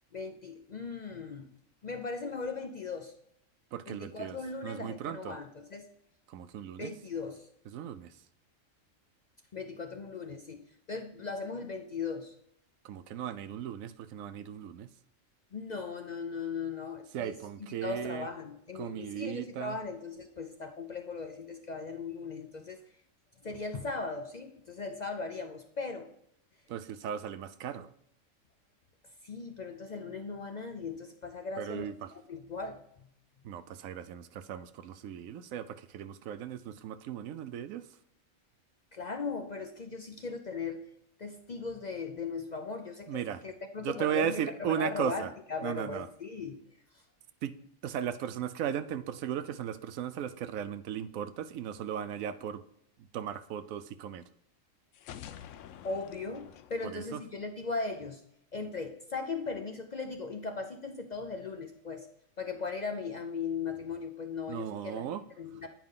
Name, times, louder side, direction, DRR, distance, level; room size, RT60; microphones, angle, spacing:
voice 1, 0.1-1.5 1.8-3.1 3.9-5.9 6.8-7.5 9.5-12.3 15.5-17.4 17.7-22.8 23.4-26.1 29.2-33.1 38.9-40.9 41.2-46.6 46.9-47.0 55.8-58.2 58.5-62.1 62.4-65.1 65.4-65.7, left 4 dB, 50° left, 5 dB, 0.5 m, -38 dB
voice 2, 3.7-4.4 4.6-5.4 6.3-6.9 7.7-8.1 12.8-14.9 17.1-18.3 18.8-19.8 26.7-27.9 31.6-32.1 33.4-37.9 43.1-43.4 43.8-45.3 45.6-46.1 47.4-47.6 47.8-52.6 53.1-54.2 56.8-57.2 64.5-65.2, right 9 dB, 85° right, 12 dB, 1.0 m, -36 dB
sound 1, 54.9-57.8, left 10 dB, 75° left, 0.9 m, -49 dB
9.4 x 5.1 x 3.7 m, 0.73 s
omnidirectional pair, 1.4 m